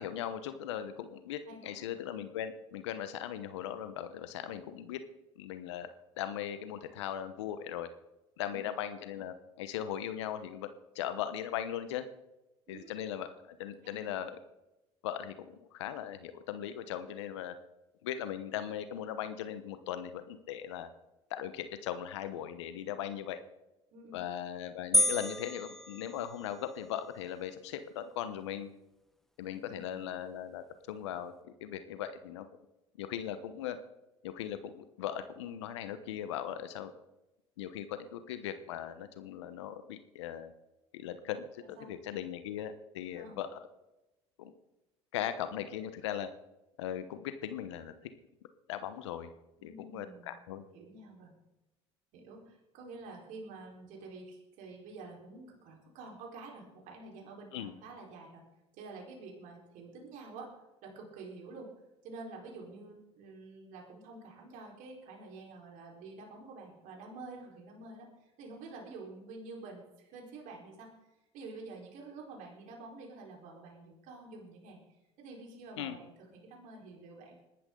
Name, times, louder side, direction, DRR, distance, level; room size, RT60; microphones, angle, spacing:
voice 1, 0.0-5.0 5.4-5.9 6.2-7.9 8.4-10.7 10.9-12.1 12.7-14.4 15.0-17.6 18.0-20.9 21.3-23.4 24.1-28.7 29.4-32.5 33.0-33.8 34.2-36.9 37.6-40.5 40.9-43.6 44.4-44.5 45.1-46.3 46.8-47.9 48.7-49.3 49.6-50.6 57.5-57.7 75.8-76.0, left 10 dB, 85° left, 11 dB, 1.0 m, -39 dB
voice 2, 1.5-1.8 8.4-8.6 12.7-12.9 13.8-14.1 23.9-24.2 29.4-30.1 41.6-41.9 43.2-43.4 49.6-50.4 50.7-51.4 52.1-58.4 58.7-60.5 60.8-61.7 62.0-70.9 71.3-77.4, right 3 dB, 65° right, -1 dB, 4.4 m, -49 dB
sound 1, 24.9-26.7, left 1 dB, ahead, 0.6 m, -30 dB
21.0 x 12.0 x 3.9 m, 0.97 s
hypercardioid pair, 70°, 14 cm